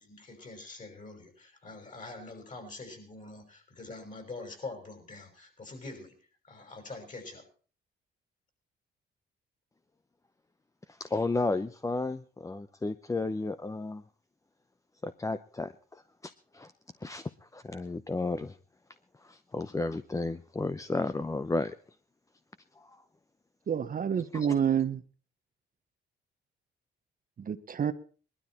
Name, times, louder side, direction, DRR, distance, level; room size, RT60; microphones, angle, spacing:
voice 1, 0.0-6.1 6.5-7.4, left 3 dB, 40° left, 5 dB, 6.0 m, -44 dB
voice 2, 10.9-14.0 15.0-16.0 16.5-16.7 17.0-18.6 19.2-21.7 22.8-23.0 24.3-24.5, left 3 dB, 15° left, 12 dB, 0.7 m, -33 dB
voice 3, 23.7-25.0 27.4-27.9, right 8 dB, 45° right, 10 dB, 1.0 m, -28 dB
20.0 x 12.5 x 4.3 m, 0.40 s
cardioid pair, 90°, 20 cm